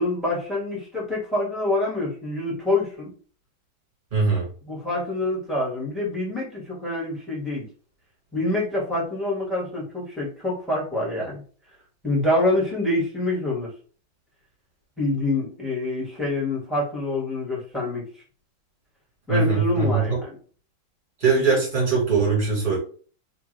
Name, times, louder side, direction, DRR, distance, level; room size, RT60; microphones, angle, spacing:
voice 1, 0.0-3.1 4.6-7.7 8.3-11.4 12.0-13.7 15.0-18.0 19.3-20.4, left 2 dB, ahead, -5 dB, 1.9 m, -26 dB
voice 2, 4.1-4.5 19.3-20.2 21.2-22.8, right 4 dB, 25° right, -4 dB, 2.3 m, -21 dB
3.7 x 3.3 x 3.4 m, 0.41 s
omnidirectional pair, 2.2 m